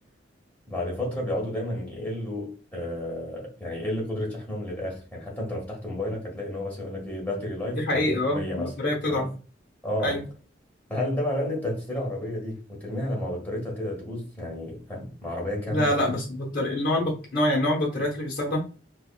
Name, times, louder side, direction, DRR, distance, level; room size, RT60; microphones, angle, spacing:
voice 1, 0.7-8.7 9.1-9.3 9.8-10.2 10.9-16.2, left 1 dB, 10° left, 1.7 m, -31 dB
voice 2, 7.7-9.3 10.0-10.2 15.7-18.6, left 1 dB, 50° left, 1.3 m, -25 dB
5.0 x 2.5 x 2.4 m
head